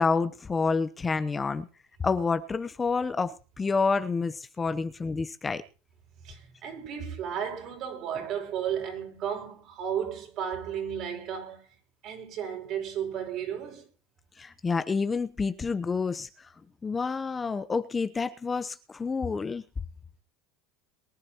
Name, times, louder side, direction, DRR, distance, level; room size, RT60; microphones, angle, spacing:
voice 1, 0.0-1.7 2.0-5.6 14.4-16.3 16.8-19.6, left 4 dB, 20° left, 0.8 m, -28 dB
voice 2, 6.2-11.7 12.0-13.9, right 8 dB, 55° right, 5.9 m, -34 dB
23.0 x 10.5 x 3.0 m
supercardioid pair, 115°, 0 cm